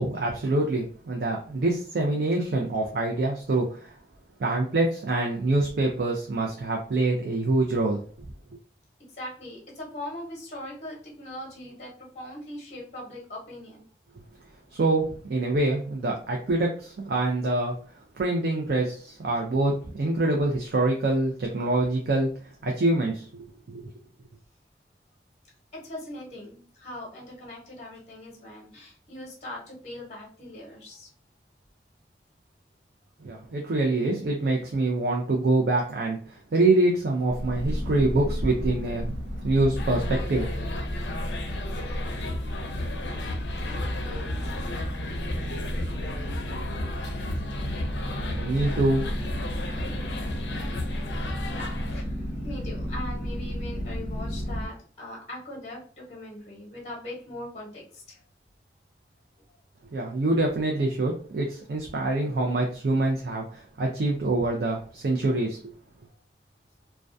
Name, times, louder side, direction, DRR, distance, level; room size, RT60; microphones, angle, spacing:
voice 1, 0.0-3.9 4.4-8.0 14.7-17.8 18.1-22.3 22.6-23.2 23.7-23.9 33.2-39.2 39.4-40.5 48.3-49.1 59.9-65.6, right 2 dB, 65° right, 0 dB, 0.4 m, -25 dB
voice 2, 9.1-13.9 25.7-31.1 43.0-43.8 51.5-58.2, left 1 dB, 40° left, -3 dB, 0.8 m, -41 dB
sound 1, 37.3-54.7, equal, 80° right, 1.0 m, -32 dB
sound 2, 39.7-52.0, left 2 dB, 80° left, 0.4 m, -35 dB
2.2 x 2.2 x 2.5 m, 0.42 s
head